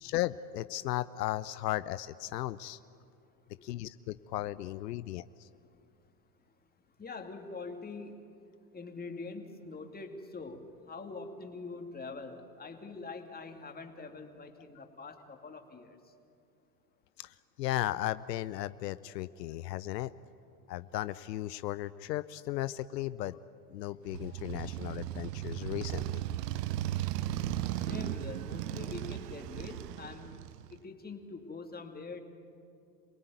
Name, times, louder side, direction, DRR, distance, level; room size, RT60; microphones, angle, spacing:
voice 1, 0.0-2.8 3.6-5.5 17.2-20.1 20.7-23.4 23.7-26.2, left 15 dB, 80° left, 15 dB, 0.7 m, -36 dB
voice 2, 7.0-8.3 8.7-16.0 27.7-30.3 30.7-32.2, left 4 dB, 20° left, 4 dB, 2.6 m, -44 dB
Motorcycle, 24.1-30.8, right 13 dB, 70° right, 0.8 m, -36 dB
27.0 x 18.5 x 9.3 m, 2.6 s
hypercardioid pair, 95°, 49 cm